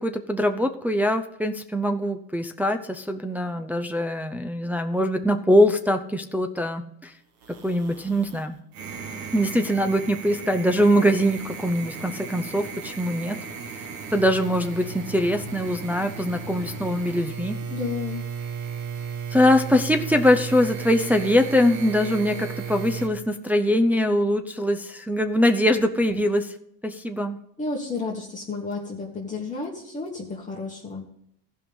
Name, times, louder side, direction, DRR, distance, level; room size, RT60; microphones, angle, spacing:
voice 1, 0.0-7.1 7.6-8.6 9.3-13.4 14.1-17.6 19.3-26.5 26.8-27.4, equal, 5° right, 4 dB, 0.5 m, -22 dB
sound 1, 7.4-8.4 8.7-23.1, right 6 dB, 85° right, 2.3 m, -35 dB
voice 2, 17.7-18.2 27.6-31.1, left 4 dB, 15° left, -3 dB, 1.8 m, -32 dB
14.5 x 5.6 x 5.3 m, 0.75 s
supercardioid pair, 100°, 47 cm